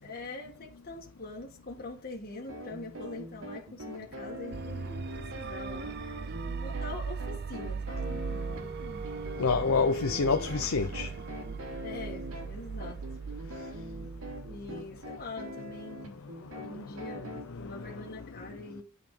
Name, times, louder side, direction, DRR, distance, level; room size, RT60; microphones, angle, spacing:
voice 1, 0.0-6.0 6.3-9.0 11.8-13.0 14.5-16.2 16.5-18.8, left 2 dB, 45° left, 1.6 m, -44 dB
sound 1, 2.5-17.4, equal, 85° right, 2.9 m, -43 dB
sound 2, 4.5-15.5, right 5 dB, 50° right, 0.5 m, -39 dB
Wind instrument woodwind instrument, 8.0-14.0, right 4 dB, 30° right, 2.7 m, -46 dB
voice 2, 9.4-11.1 17.5-17.8, left 4 dB, 75° left, 0.6 m, -27 dB
9.5 x 4.9 x 5.3 m
head